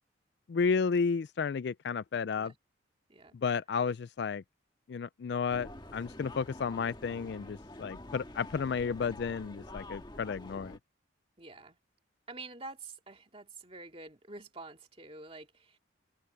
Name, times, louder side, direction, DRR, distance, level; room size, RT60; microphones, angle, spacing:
voice 1, 0.5-2.5 3.3-4.4 4.9-10.8, left 5 dB, 55° left, 0.3 m, -32 dB
sound 1, 5.5-10.8, left 1 dB, 20° left, 1.7 m, -47 dB
voice 2, 11.4-11.8 12.3-15.8, right 3 dB, 30° right, 2.4 m, -47 dB
head